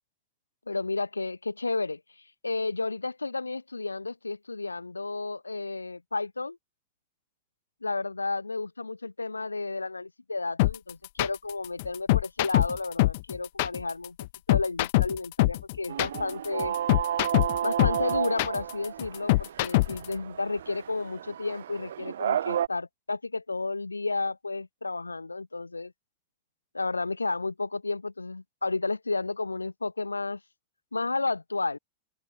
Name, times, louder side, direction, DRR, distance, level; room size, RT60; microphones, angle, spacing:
voice 1, 0.7-2.0 2.4-6.6 7.8-14.2 14.5-16.7 17.6-25.9 26.7-30.4 30.9-31.8, left 3 dB, 80° left, 1.0 m, -32 dB
sound 1, 10.6-20.1, left 21 dB, 50° left, 0.7 m, -24 dB
sound 2, 15.9-22.7, right 10 dB, 65° right, 0.7 m, -32 dB
open air
figure-of-eight pair, 90°, 0 cm